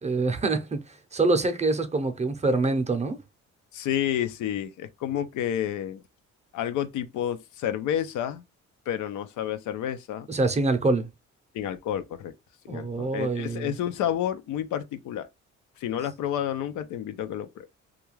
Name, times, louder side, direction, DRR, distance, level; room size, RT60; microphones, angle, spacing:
voice 1, 0.0-3.2 10.3-11.1 12.7-13.7, right 3 dB, 25° right, 0.6 m, -25 dB
voice 2, 3.7-6.0 6.5-8.4 8.9-10.3 11.5-12.3 12.6-15.3 15.8-17.7, left 10 dB, 80° left, 0.5 m, -30 dB
2.4 x 2.2 x 3.0 m
cardioid pair, 90°, 30 cm